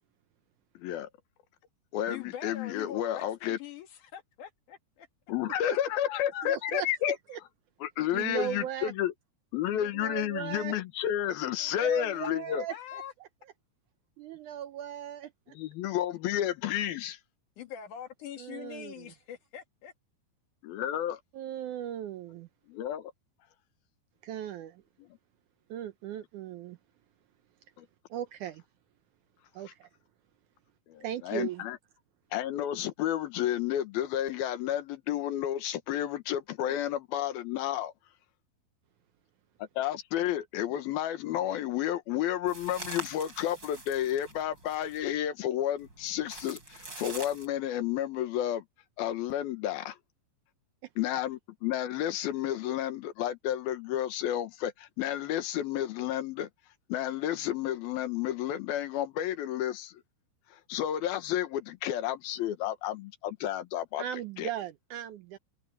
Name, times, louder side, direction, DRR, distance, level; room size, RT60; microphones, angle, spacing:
voice 1, 0.8-1.1 1.9-3.6 5.3-7.2 7.8-9.1 9.5-12.6 15.5-17.2 20.6-21.2 22.7-23.1 27.8-27.9 30.9-31.8 32.3-37.9 39.8-48.6 49.0-50.0 51.0-56.5 56.9-60.0 60.5-64.0 64.4-64.5, left 11 dB, 85° left, 3.1 m, -31 dB
voice 2, 2.1-5.1 11.8-12.1 12.7-13.1 17.6-19.9, left 9 dB, 60° left, 3.1 m, -43 dB
voice 3, 6.4-6.9 7.3-7.4 8.1-8.9 9.7-10.8 11.6-12.7 13.2-13.3 14.2-15.6 18.4-19.1 21.3-22.5 24.2-24.8 25.7-26.8 28.1-28.6 29.5-29.9 31.0-31.6 36.6-36.8 64.0-65.4, right 11 dB, 75° right, 1.9 m, -38 dB
sound 1, 42.5-45.2 45.8-47.5, right 2 dB, 30° right, 6.9 m, -44 dB
omnidirectional pair, 4.2 m